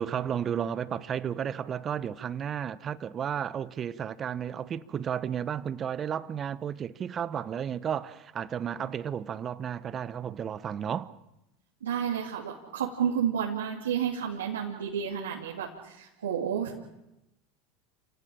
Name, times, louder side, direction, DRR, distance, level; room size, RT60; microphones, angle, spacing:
voice 1, 0.0-11.1, right 8 dB, 35° right, 1.3 m, -33 dB
voice 2, 11.8-16.8, right 8 dB, 90° right, 3.1 m, -31 dB
29.0 x 18.0 x 8.9 m
hypercardioid pair, 95°, 0 cm